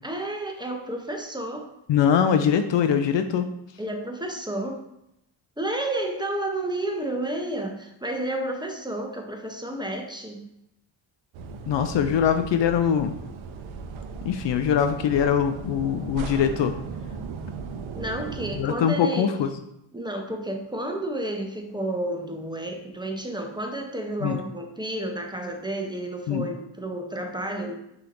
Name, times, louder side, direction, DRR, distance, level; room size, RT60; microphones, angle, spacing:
voice 1, 0.0-1.7 3.8-4.8 5.6-10.4 17.9-19.3 19.9-27.8, right 1 dB, 10° right, 2 dB, 0.8 m, -31 dB
voice 2, 1.9-3.5 11.7-13.1 14.2-16.7 18.6-19.5 24.2-24.4 26.3-26.5, left 8 dB, 60° left, 8 dB, 0.5 m, -22 dB
sound 1, 11.3-18.6, right 5 dB, 70° right, 0.6 m, -37 dB
5.6 x 3.0 x 2.6 m, 0.82 s
supercardioid pair, 45°, 50 cm